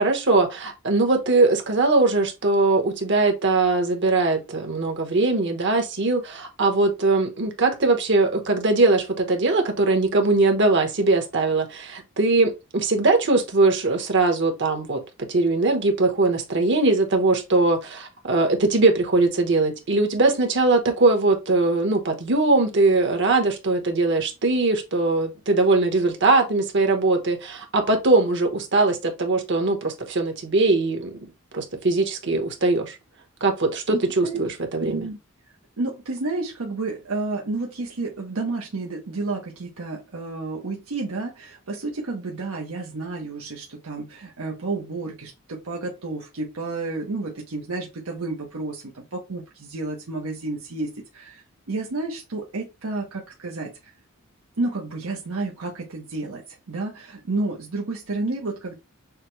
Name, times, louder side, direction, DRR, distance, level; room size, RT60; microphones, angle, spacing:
voice 1, 0.0-15.0 15.3-31.1 31.5-32.9 33.4-35.1, right 3 dB, 55° right, 1.2 m, -21 dB
voice 2, 33.9-34.4 34.8-35.2 35.8-53.7 54.6-58.7, right 3 dB, 75° right, 0.9 m, -31 dB
6.5 x 2.2 x 3.1 m
head